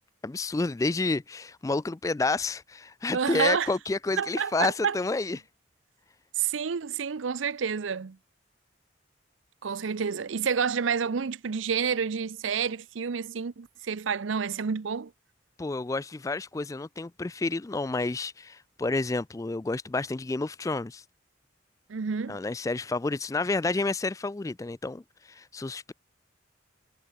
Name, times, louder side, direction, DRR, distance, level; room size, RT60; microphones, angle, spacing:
voice 1, 0.2-5.4 15.6-21.0 22.3-25.9, left 3 dB, 15° left, 0.3 m, -30 dB
voice 2, 3.1-3.7 4.2-5.0 6.4-8.2 9.6-15.1 21.9-22.4, right 6 dB, 90° right, 0.6 m, -29 dB
head